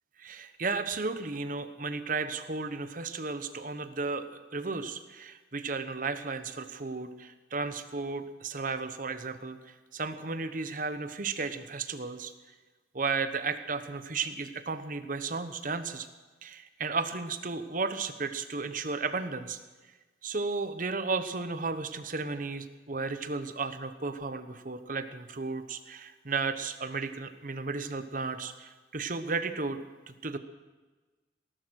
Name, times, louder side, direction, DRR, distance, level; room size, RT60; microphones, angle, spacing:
voice 1, 0.2-12.3 12.9-16.1 16.4-19.6 20.2-30.4, right 4 dB, 45° right, 10 dB, 1.0 m, -34 dB
18.5 x 12.0 x 6.4 m, 1.3 s
head